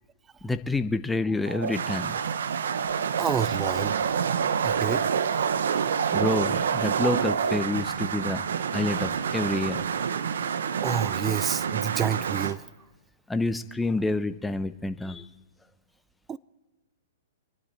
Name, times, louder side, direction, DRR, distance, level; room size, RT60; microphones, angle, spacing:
voice 1, 0.4-2.2 6.1-8.4 8.7-9.8 11.9-12.0 13.3-15.3, left 2 dB, 5° left, 0.8 m, -28 dB
sound 1, 1.5-12.5, right 7 dB, 80° right, 0.8 m, -27 dB
voice 2, 3.2-4.0 4.6-5.0 10.8-12.6 16.3-16.4, right 8 dB, 20° right, 0.5 m, -29 dB
26.5 x 11.5 x 4.4 m
hypercardioid pair, 130°, 0 cm